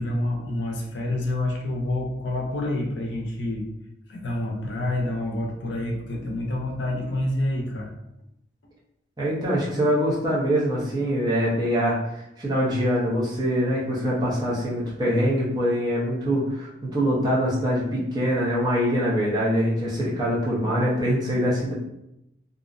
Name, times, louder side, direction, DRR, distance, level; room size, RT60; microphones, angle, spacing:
voice 1, 0.0-3.6 4.1-7.9, left 1 dB, 75° left, 0 dB, 0.5 m, -28 dB
voice 2, 9.2-21.7, equal, 20° right, -6 dB, 0.6 m, -24 dB
2.5 x 2.0 x 2.4 m, 0.84 s
head